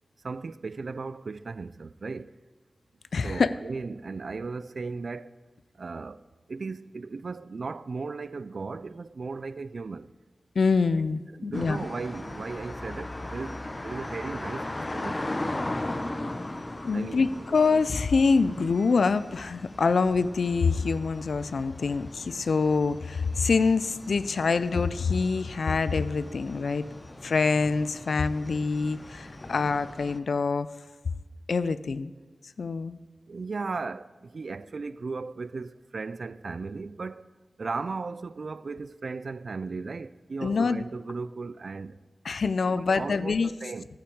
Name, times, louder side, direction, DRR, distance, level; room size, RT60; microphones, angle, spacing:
voice 1, 0.2-2.3 3.2-5.3 5.8-6.2 6.5-10.1 11.3-15.3 16.9-17.6 33.3-37.2 37.6-42.0 42.7-43.9, right 4 dB, 75° right, 0.3 m, -36 dB
voice 2, 3.1-3.5 10.6-11.9 16.8-26.8 27.2-30.7 31.5-32.1 32.6-33.0 40.4-40.8 42.2-43.5, left 4 dB, 85° left, 0.4 m, -25 dB
sound 1, 11.5-30.2, left 1 dB, 35° left, 0.8 m, -38 dB
11.5 x 5.8 x 7.8 m
cardioid pair, 45°, 0 cm